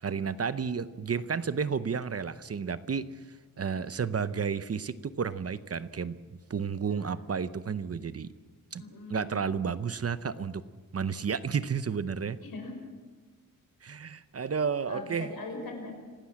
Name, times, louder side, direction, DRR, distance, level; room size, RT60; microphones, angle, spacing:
voice 1, 0.0-3.2 3.6-6.2 6.5-8.3 8.7-8.8 9.1-10.6 10.9-12.4 13.8-15.3, right 6 dB, 45° right, 14 dB, 0.8 m, -31 dB
voice 2, 6.8-7.2 8.8-9.4 12.4-12.8 14.9-16.0, left 3 dB, 80° left, 3 dB, 6.1 m, -41 dB
26.5 x 17.5 x 7.5 m, 1.4 s
wide cardioid pair, 165°, 35 cm